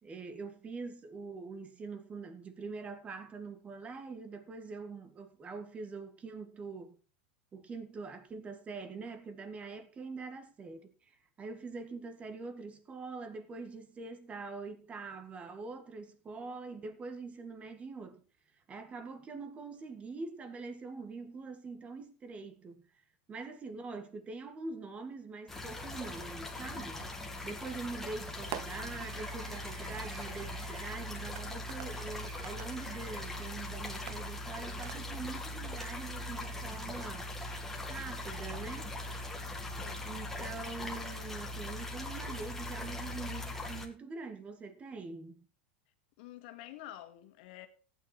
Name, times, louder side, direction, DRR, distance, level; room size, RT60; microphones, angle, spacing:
voice 1, 0.0-7.0 7.5-18.2 18.7-22.8 23.3-27.0 27.4-37.3 37.9-38.9 40.0-45.5, right 4 dB, 20° right, 1.7 m, -44 dB
sound 1, 25.5-43.9, left 1 dB, 5° left, 2.3 m, -40 dB
Fireworks, 27.0-27.4 28.5-33.6 34.1-35.4, right 12 dB, 50° right, 0.8 m, -48 dB
voice 2, 39.8-40.2 46.2-47.7, left 13 dB, 65° left, 1.9 m, -49 dB
15.0 x 9.2 x 4.4 m
supercardioid pair, 125°, 6 cm